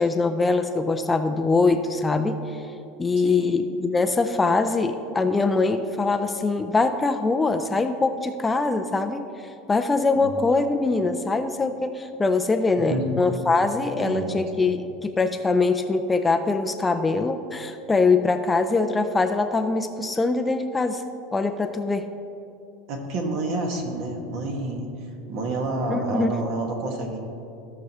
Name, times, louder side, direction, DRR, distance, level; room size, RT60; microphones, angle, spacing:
voice 1, 0.0-2.6 3.0-21.0 21.3-22.0 25.9-26.3, left 3 dB, 15° left, 7 dB, 0.4 m, -23 dB
voice 2, 3.3-3.6 10.1-10.3 12.9-13.3 14.0-14.4 22.9-24.9 25.3-27.2, right 2 dB, 60° right, 2 dB, 1.7 m, -29 dB
16.0 x 6.0 x 3.1 m, 2.8 s
supercardioid pair, 135°, 0 cm